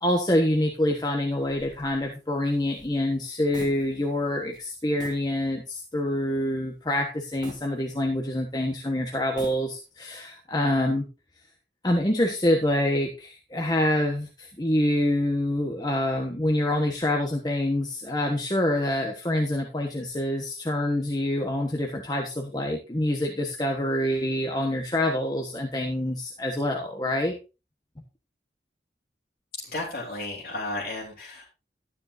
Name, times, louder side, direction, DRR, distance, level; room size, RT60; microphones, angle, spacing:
voice 1, 0.0-11.1 11.8-27.4, left 1 dB, 25° left, 2 dB, 1.3 m, -26 dB
sound 1, 1.4-4.2 4.5-4.7 5.0-5.3 5.8-5.9 7.4-8.4 9.2-10.0, right 1 dB, 25° right, 2.8 m, -46 dB
voice 2, 29.5-31.4, left 2 dB, 50° left, -4 dB, 3.7 m, -33 dB
12.5 x 9.4 x 2.7 m, 0.29 s
head